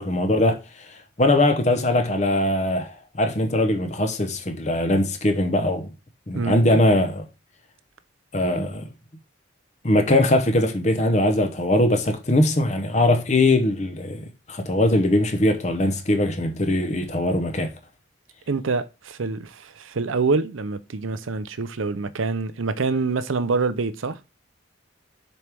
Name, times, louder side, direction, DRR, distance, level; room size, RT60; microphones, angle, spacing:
voice 1, 0.0-5.9 6.3-7.2 8.3-8.9 9.8-17.7, left 1 dB, 35° left, 0.8 m, -21 dB
voice 2, 18.5-24.2, right 4 dB, 90° right, 0.6 m, -26 dB
7.0 x 4.6 x 3.5 m
head